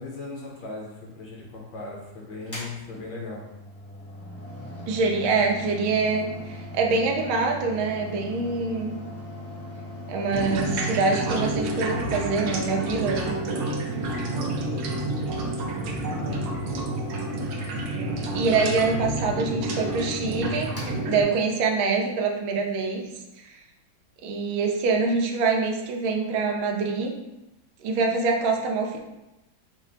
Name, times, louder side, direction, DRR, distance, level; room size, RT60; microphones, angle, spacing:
voice 1, 0.0-3.4 14.2-14.4 16.1-17.0 18.3-18.4, left 3 dB, 65° left, -3 dB, 1.4 m, -38 dB
Mechanical fan, 2.4-21.8, left 1 dB, 20° left, 0.3 m, -39 dB
voice 2, 4.9-8.9 10.1-13.3 17.8-20.7 21.1-23.0 24.2-27.1 27.8-29.0, right 4 dB, 85° right, 1 dB, 1.4 m, -25 dB
sound 1, 10.3-21.2, right 2 dB, 70° right, 0.9 m, -29 dB
4.5 x 2.1 x 3.8 m, 0.95 s
omnidirectional pair, 2.2 m